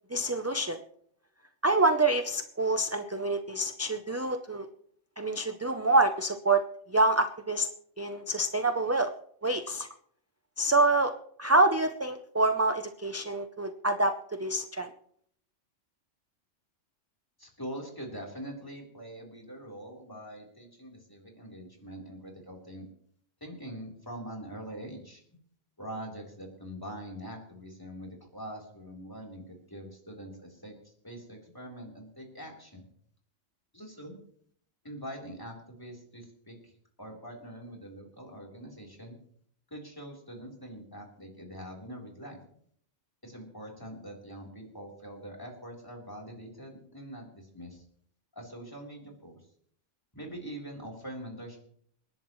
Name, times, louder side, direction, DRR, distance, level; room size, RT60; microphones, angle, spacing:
voice 1, 0.1-0.8 1.6-4.7 5.2-6.6 6.9-7.7 8.0-9.1 9.4-9.9 10.6-11.1 11.4-14.1 14.4-14.9, right 2 dB, 20° right, 7 dB, 0.5 m, -26 dB
voice 2, 17.4-22.9 23.4-25.2 25.8-32.8 33.7-34.2 34.8-36.7 37.0-39.2 39.7-42.4 43.2-47.8 48.3-49.4 50.1-51.6, equal, 15° left, 0 dB, 3.9 m, -43 dB
28.5 x 11.0 x 3.2 m, 0.63 s
omnidirectional pair, 1.3 m